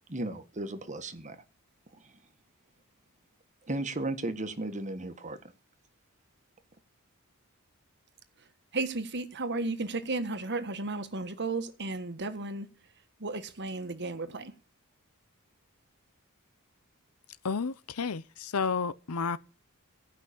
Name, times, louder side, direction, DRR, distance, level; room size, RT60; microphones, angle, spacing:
voice 1, 0.1-1.4 2.0-2.1 3.7-5.4, right 2 dB, 35° right, 1.5 m, -35 dB
voice 2, 8.7-12.7 13.2-14.5, right 3 dB, 55° right, 1.5 m, -34 dB
voice 3, 17.4-19.4, left 5 dB, 85° left, 0.7 m, -31 dB
17.0 x 5.9 x 8.6 m
head